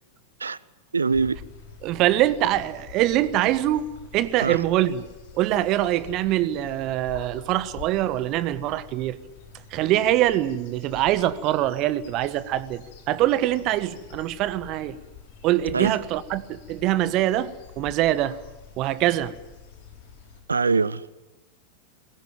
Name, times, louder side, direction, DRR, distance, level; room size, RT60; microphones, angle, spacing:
voice 1, 0.9-1.4 4.4-4.6 15.7-15.9 20.5-21.0, right 4 dB, 75° right, 0.8 m, -23 dB
sound 1, 1.1-20.4, left 7 dB, 50° left, 6.4 m, -46 dB
voice 2, 1.8-3.8 4.1-5.1 5.3-9.2 9.7-15.0 15.4-18.4 18.8-19.4, right 14 dB, 40° right, 1.3 m, -24 dB
23.0 x 21.0 x 9.3 m
figure-of-eight pair, 90°, 0 cm